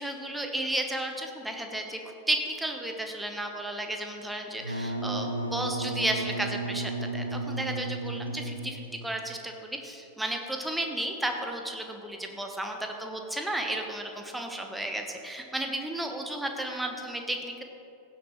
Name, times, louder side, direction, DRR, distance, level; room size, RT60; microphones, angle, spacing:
voice 1, 0.0-17.6, right 1 dB, 5° right, 3 dB, 1.1 m, -33 dB
Wind instrument woodwind instrument, 4.6-9.1, right 2 dB, 85° right, 0.7 m, -33 dB
16.0 x 7.1 x 3.1 m, 2.7 s
figure-of-eight pair, 90°, 0 cm